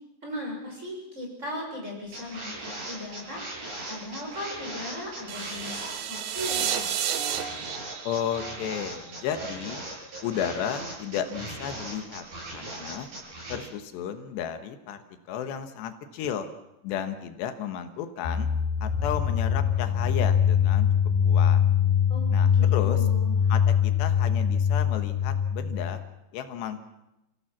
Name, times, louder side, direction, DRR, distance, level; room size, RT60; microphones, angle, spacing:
voice 1, 0.2-3.4 3.9-6.8 22.1-23.4, left 1 dB, 15° right, 0 dB, 6.4 m, -37 dB
sound 1, 2.1-13.6, right 2 dB, 45° right, 9.5 m, -38 dB
sound 2, 5.3-9.4, right 10 dB, 80° right, 1.7 m, -32 dB
voice 2, 8.0-9.8 10.2-12.2 12.5-13.1 13.5-16.5 16.8-18.5 18.8-20.9 21.2-21.6 22.3-23.1 23.5-26.0 26.3-26.8, left 8 dB, 80° left, 8 dB, 3.4 m, -33 dB
sound 3, 18.2-26.0, left 8 dB, 65° left, 4.6 m, -23 dB
29.0 x 16.0 x 7.4 m, 0.92 s
omnidirectional pair, 4.9 m